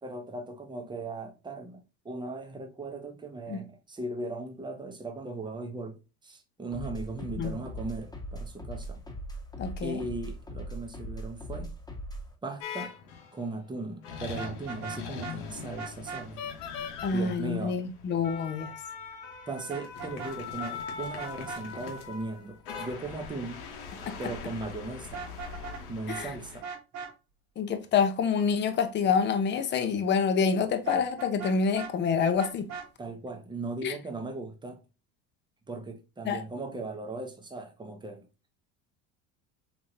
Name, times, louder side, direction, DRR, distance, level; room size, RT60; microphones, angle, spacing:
voice 1, 0.0-9.0 9.8-11.7 12.4-12.9 13.3-16.4 17.1-17.8 19.5-23.6 24.2-25.2 25.9-26.7 33.0-34.8 35.7-38.5, right 2 dB, 15° right, 0.7 m, -38 dB
sound 1, 6.7-12.3, right 1 dB, 10° left, 1.2 m, -40 dB
voice 2, 9.6-10.0 17.0-18.7 24.0-24.2 26.1-26.3 27.6-32.7 33.8-33.9 36.2-36.4, left 6 dB, 30° left, 0.6 m, -27 dB
sound 2, 12.6-13.4 14.0-26.6, left 6 dB, 85° left, 1.0 m, -41 dB
Vehicle horn car horn honking, 14.3-15.4 15.8-16.2 19.7-20.3 20.6-20.7 21.2-21.6 25.0-25.8 26.1-26.3 26.6-27.1 30.9-31.9 32.4-32.9, right 6 dB, 55° right, 1.1 m, -39 dB
3.6 x 2.9 x 2.7 m
supercardioid pair, 95°, 35 cm